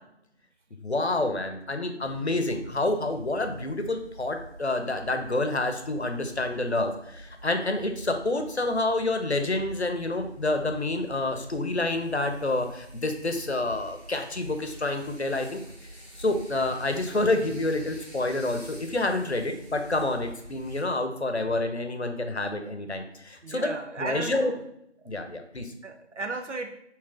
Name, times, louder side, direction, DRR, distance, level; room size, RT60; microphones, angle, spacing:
voice 1, 0.8-15.6 16.2-23.7 24.0-24.5 25.1-25.7, left 2 dB, 70° left, 6 dB, 0.8 m, -28 dB
sound 1, 2.0-20.8, right 1 dB, 35° right, 1.3 m, -46 dB
voice 2, 23.4-24.6 25.0-25.1 25.8-26.8, right 3 dB, 90° right, 6 dB, 0.6 m, -35 dB
6.5 x 3.2 x 2.4 m, 0.77 s
figure-of-eight pair, 175°, 35 cm